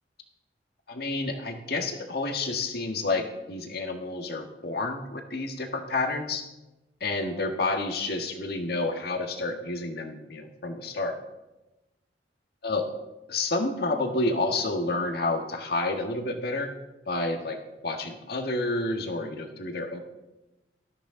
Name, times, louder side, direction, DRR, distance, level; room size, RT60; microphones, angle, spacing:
voice 1, 0.9-6.4 7.0-11.2 12.6-12.9 13.3-16.7 17.0-17.6 17.8-20.0, left 2 dB, 60° left, 4 dB, 1.5 m, -29 dB
19.5 x 13.5 x 3.8 m, 1.0 s
head